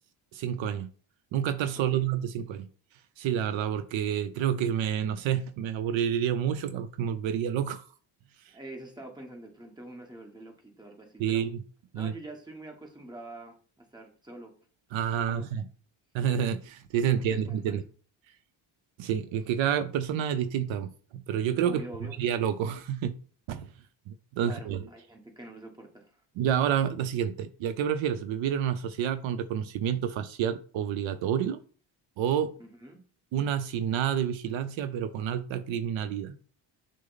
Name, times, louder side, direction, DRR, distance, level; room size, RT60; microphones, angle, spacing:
voice 1, 0.3-0.9 1.3-2.7 3.2-7.9 8.4-8.5 11.2-11.6 11.9-12.1 14.9-15.7 16.1-17.8 19.0-21.8 22.2-23.2 23.5-23.7 24.1-24.8 26.4-31.6 32.2-32.5 33.3-36.4, right 9 dB, 70° right, 0.5 m, -29 dB
voice 2, 8.5-11.5 11.9-14.5 15.2-15.5 17.0-17.8 21.6-22.2 24.4-26.2 32.6-33.0, right 1 dB, 10° right, 1.1 m, -45 dB
6.2 x 2.1 x 3.9 m
cardioid pair, 90°, 48 cm